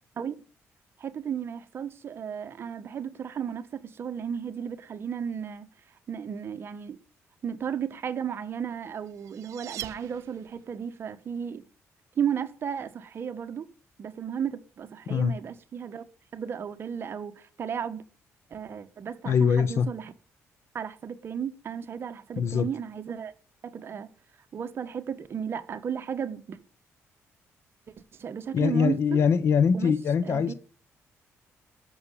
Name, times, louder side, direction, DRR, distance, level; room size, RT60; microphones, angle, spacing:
voice 1, 1.0-5.7 6.1-7.0 7.4-11.6 12.2-13.7 14.0-16.0 16.3-18.0 18.5-20.1 20.7-23.3 23.6-24.1 24.5-26.6 28.1-29.0 29.7-29.9 30.2-30.5, right 8 dB, 50° right, 1.2 m, -34 dB
sound 1, 8.7-10.8, right 12 dB, 80° right, 0.8 m, -42 dB
voice 2, 19.2-19.9 22.3-22.7 28.5-30.5, left 6 dB, 55° left, 1.1 m, -23 dB
13.0 x 6.5 x 6.9 m
cardioid pair, 115°, 5 cm